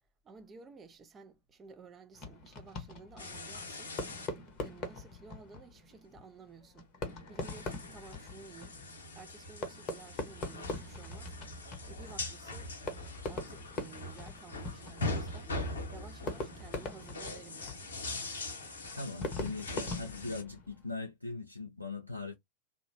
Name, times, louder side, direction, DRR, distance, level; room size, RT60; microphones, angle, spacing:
voice 1, 0.2-4.0 4.6-6.9 7.3-8.8 9.1-11.3 11.9-12.7 13.3-15.6 15.9-17.9, right 4 dB, 20° right, 0.6 m, -54 dB
Fireworks, 2.1-21.0, left 2 dB, 35° left, 0.9 m, -43 dB
sound 1, 3.2-4.3 4.6-4.7 7.0-20.4, left 2 dB, 65° left, 0.7 m, -42 dB
voice 2, 18.9-22.3, left 3 dB, 90° left, 0.4 m, -40 dB
3.1 x 2.0 x 2.5 m
figure-of-eight pair, 90°, 0 cm